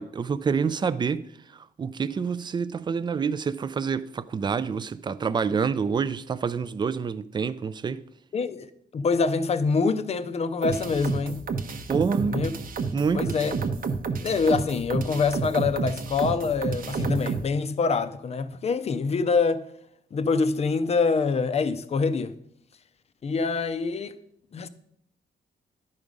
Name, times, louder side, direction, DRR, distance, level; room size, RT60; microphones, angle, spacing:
voice 1, 0.0-8.0 11.9-12.5 12.9-13.4, right 6 dB, 25° right, 0.3 m, -27 dB
voice 2, 8.3-11.4 12.2-12.5 13.1-13.6 14.2-19.6 20.1-22.3 23.2-24.2 24.5-24.7, left 4 dB, 35° left, 0.5 m, -25 dB
sound 1, 10.6-17.5, right 5 dB, 50° right, 0.7 m, -30 dB
11.0 x 4.9 x 5.2 m
cardioid pair, 135°, 18 cm